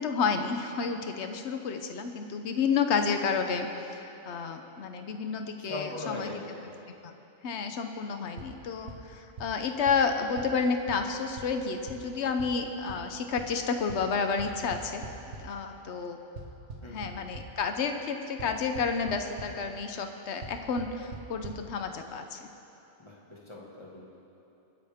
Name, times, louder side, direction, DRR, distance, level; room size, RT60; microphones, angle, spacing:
voice 1, 0.0-3.7 4.0-6.4 7.0-7.1 7.4-15.0 15.4-16.2 16.9-22.4, left 5 dB, 75° left, 6 dB, 1.1 m, -30 dB
voice 2, 5.6-6.7 16.8-17.1 23.0-24.1, left 2 dB, 25° left, -5 dB, 2.1 m, -40 dB
sound 1, 8.4-8.5 8.9-9.0 9.4-9.5 9.9-10.0 10.4-10.5 10.9-11.0 11.4-11.5 11.9-12.0 12.4-12.5 12.9-13.0 13.4-13.5 13.9-14.0 14.4-15.4 16.4-17.4 18.4-18.5 18.7-19.1 19.4-19.5 20.4-20.5 20.8-20.9 21.1-21.2 21.4-21.5, right 4 dB, 90° right, 1.5 m, -40 dB
24.5 x 10.0 x 3.6 m, 2.9 s
omnidirectional pair, 1.1 m